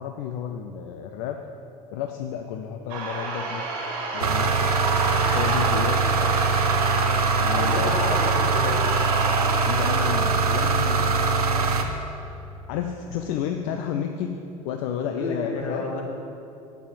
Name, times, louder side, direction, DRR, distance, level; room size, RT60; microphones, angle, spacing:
voice 1, 0.0-1.4 1.9-3.7 4.1-4.7 5.2-6.0 7.4-8.1 9.6-11.8 12.7-14.3 14.6-15.8, left 9 dB, 55° left, 5 dB, 0.6 m, -31 dB
sound 1, 2.9-10.0, right 3 dB, 60° right, 2.4 m, -30 dB
sound 2, 4.2-11.8, right 4 dB, 80° right, 0.7 m, -22 dB
voice 2, 7.5-8.8 15.1-16.0, left 2 dB, 70° left, -1 dB, 1.9 m, -31 dB
8.4 x 7.0 x 7.6 m, 2.8 s
figure-of-eight pair, 65°, 19 cm